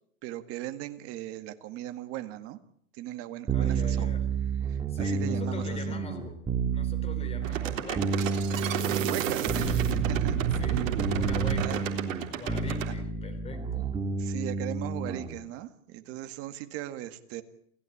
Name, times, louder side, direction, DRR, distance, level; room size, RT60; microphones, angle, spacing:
voice 1, 0.2-2.6 3.0-4.1 4.7-6.0 9.1-9.7 10.1-10.4 11.6-11.8 12.9-13.0 14.2-17.4, right 14 dB, 30° right, 9 dB, 1.9 m, -38 dB
voice 2, 3.5-4.3 4.9-6.4 6.7-9.0 9.5-9.9 10.6-11.9 12.3-13.9, left 2 dB, 15° left, 10 dB, 3.8 m, -42 dB
sound 1, 3.5-15.3, right 5 dB, 10° right, 2.1 m, -30 dB
sound 2, 7.4-12.9, right 9 dB, 60° right, 3.6 m, -30 dB
28.5 x 16.0 x 8.6 m, 0.65 s
hypercardioid pair, 145°, 43 cm